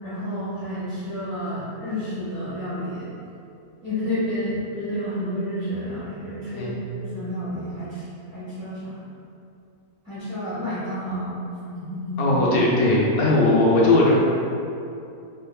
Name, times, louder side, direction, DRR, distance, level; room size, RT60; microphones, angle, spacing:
voice 1, 0.0-3.1 3.8-8.1 8.3-9.0 10.0-11.4 11.7-12.3, equal, 10° right, -14 dB, 1.2 m, -30 dB
voice 2, 12.2-14.2, left 2 dB, 80° left, -5 dB, 1.1 m, -18 dB
3.9 x 2.8 x 2.3 m, 2.6 s
omnidirectional pair, 1.5 m